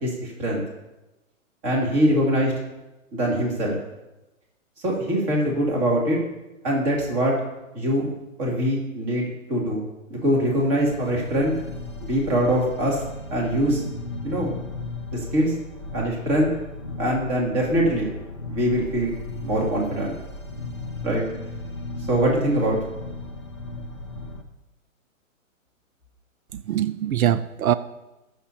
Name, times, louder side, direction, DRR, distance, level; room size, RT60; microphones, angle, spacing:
voice 1, 0.0-0.6 1.6-2.5 3.1-3.8 4.8-6.2 6.6-7.3 7.7-8.1 8.4-9.8 10.1-11.6 12.0-13.0 13.3-13.8 14.2-14.5 15.1-15.5 15.9-16.5 17.0-18.1 18.5-19.1 19.4-20.1 21.0-21.2 22.1-22.8, equal, 25° right, -2 dB, 2.6 m, -23 dB
sound 1, 10.7-24.4, left 2 dB, 20° left, 0.3 m, -36 dB
voice 2, 26.5-27.7, right 11 dB, 85° right, 14 dB, 0.6 m, -23 dB
20.5 x 7.0 x 2.9 m, 1.0 s
hypercardioid pair, 160°, 41 cm